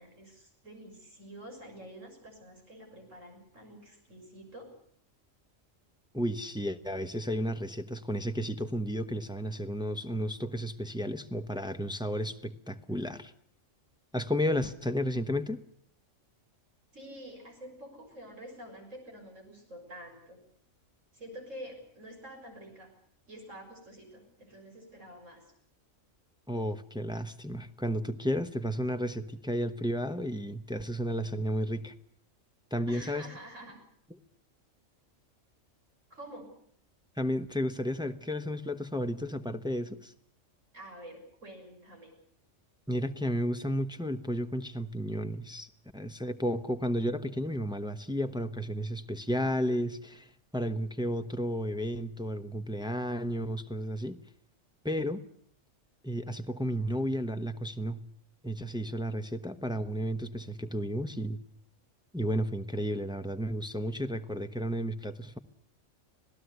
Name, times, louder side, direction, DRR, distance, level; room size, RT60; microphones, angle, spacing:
voice 1, 0.0-4.7 16.9-20.4 21.1-22.9 23.3-25.5 32.9-33.8 36.1-36.5 40.7-42.1, right 1 dB, 80° right, 2 dB, 6.9 m, -48 dB
voice 2, 6.1-13.3 14.1-15.6 26.5-31.9 32.7-33.3 37.2-40.1 42.9-54.2 54.8-55.2 56.0-58.0 58.4-61.4 62.1-65.4, equal, 5° right, 8 dB, 0.9 m, -33 dB
26.0 x 17.5 x 8.1 m, 0.63 s
omnidirectional pair, 1.3 m